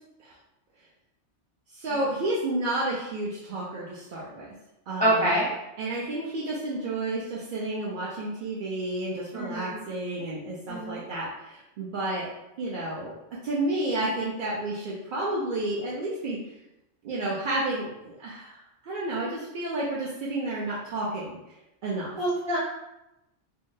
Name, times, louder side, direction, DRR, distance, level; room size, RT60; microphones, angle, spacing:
voice 1, 1.7-4.5 4.9-5.4 5.8-12.3 12.6-13.1 13.4-16.4 17.0-18.6 18.9-21.4 21.8-22.2, right 2 dB, 60° right, -6 dB, 0.6 m, -31 dB
voice 2, 5.0-5.5 9.3-9.8 10.7-11.0 22.2-22.6, right 1 dB, 10° left, -7 dB, 0.3 m, -26 dB
3.6 x 2.0 x 2.6 m, 0.91 s
omnidirectional pair, 1.2 m